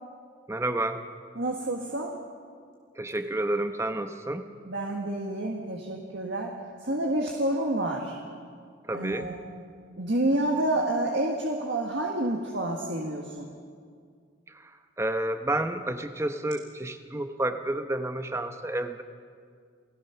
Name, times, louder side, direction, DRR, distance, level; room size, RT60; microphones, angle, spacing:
voice 1, 0.5-1.0 2.9-4.5 8.8-9.3 14.5-19.0, right 1 dB, 15° right, 7 dB, 1.1 m, -30 dB
voice 2, 1.4-2.1 4.7-6.5 6.8-8.2 8.9-9.4 10.0-13.5, right 1 dB, 65° right, 0 dB, 1.8 m, -28 dB
29.0 x 17.5 x 5.9 m, 2.1 s
head